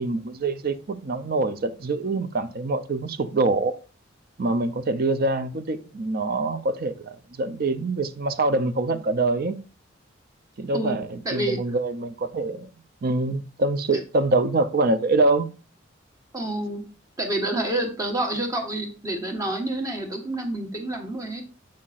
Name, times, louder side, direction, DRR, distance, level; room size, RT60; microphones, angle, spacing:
voice 1, 0.0-3.7 4.4-9.6 10.6-12.7 13.0-15.5, right 2 dB, 50° right, 0.5 m, -25 dB
voice 2, 11.2-11.6 13.9-14.0 16.3-16.8 17.2-21.4, right 1 dB, 20° right, 1.2 m, -28 dB
7.6 x 5.6 x 2.4 m
head